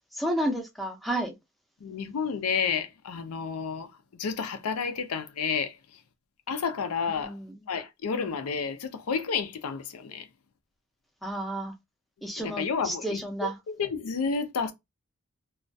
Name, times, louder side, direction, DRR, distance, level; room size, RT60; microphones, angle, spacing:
voice 1, 0.1-1.3 7.1-7.6 11.2-11.7 12.2-13.6, right 1 dB, ahead, 0.4 m, -31 dB
voice 2, 1.8-3.9 4.2-5.8 6.5-7.3 7.7-10.3 12.4-14.7, left 5 dB, 85° left, 0.4 m, -30 dB
2.3 x 2.1 x 2.6 m
head